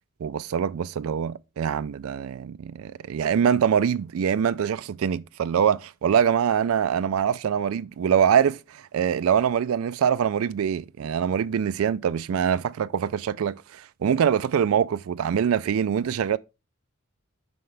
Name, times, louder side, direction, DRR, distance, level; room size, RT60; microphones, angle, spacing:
voice 1, 0.2-16.4, right 8 dB, 90° right, 0.4 m, -24 dB
9.3 x 5.7 x 3.3 m
head